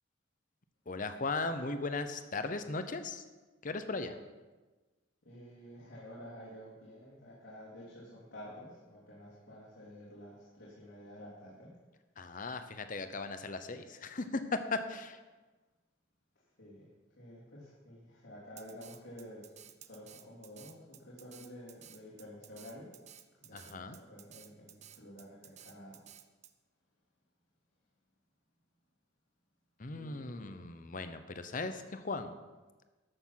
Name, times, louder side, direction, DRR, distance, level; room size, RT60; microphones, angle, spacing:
voice 1, 0.9-3.2 3.6-4.2 12.2-15.2 23.5-24.0 29.8-32.3, left 3 dB, 40° left, 9 dB, 0.8 m, -37 dB
voice 2, 5.2-11.7 16.6-16.9 17.1-19.5 19.8-22.9 23.4-26.0 29.9-31.0, equal, 75° left, -9 dB, 3.2 m, -51 dB
Drum kit, 18.6-26.5, right 10 dB, 35° right, 0.6 m, -54 dB
13.0 x 6.8 x 5.9 m, 1.2 s
head